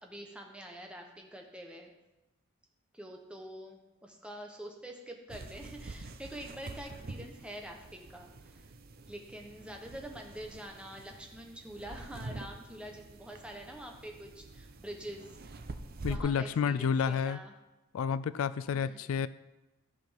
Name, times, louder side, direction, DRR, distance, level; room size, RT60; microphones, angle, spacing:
voice 1, 0.0-1.9 2.9-8.6 9.1-15.4 16.1-17.5 18.7-19.1, right 1 dB, 5° right, 1 dB, 1.1 m, -46 dB
sound 1, 5.3-16.2, right 2 dB, 40° right, 0.6 m, -46 dB
voice 2, 16.0-17.4 17.9-19.3, left 6 dB, 70° left, 16 dB, 0.3 m, -30 dB
13.5 x 5.2 x 5.8 m, 1.0 s
head